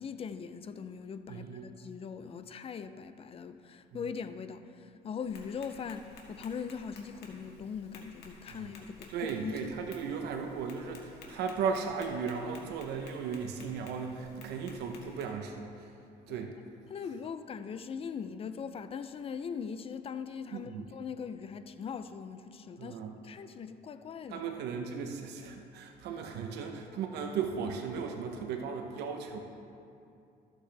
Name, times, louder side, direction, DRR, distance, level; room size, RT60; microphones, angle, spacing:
voice 1, 0.0-9.7 16.3-16.4 16.9-24.4, left 6 dB, 35° left, 0.5 m, -41 dB
voice 2, 1.3-1.7 8.5-8.6 9.1-15.9 16.3-16.5 20.5-20.9 22.8-23.1 24.3-29.4, right 6 dB, 80° right, 0.8 m, -36 dB
Tap, 5.2-15.2, left 3 dB, 80° left, 1.6 m, -54 dB
13.5 x 8.0 x 3.3 m
cardioid pair, 110°, 17 cm